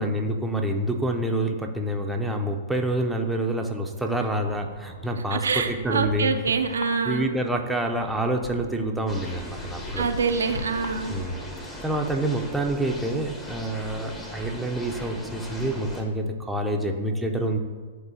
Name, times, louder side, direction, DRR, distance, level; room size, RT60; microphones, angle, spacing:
voice 1, 0.0-6.3 7.0-10.1 11.1-11.4 11.8-17.6, right 1 dB, 5° right, 1 dB, 0.6 m, -27 dB
sound 1, 4.1-12.2, left 4 dB, 70° left, 0.5 m, -42 dB
voice 2, 5.3-7.3 10.0-11.1, right 5 dB, 85° right, 6 dB, 0.4 m, -25 dB
sound 2, 9.1-16.0, equal, 15° left, 1.0 m, -38 dB
11.0 x 3.6 x 2.8 m, 1.4 s
hypercardioid pair, 115°, 0 cm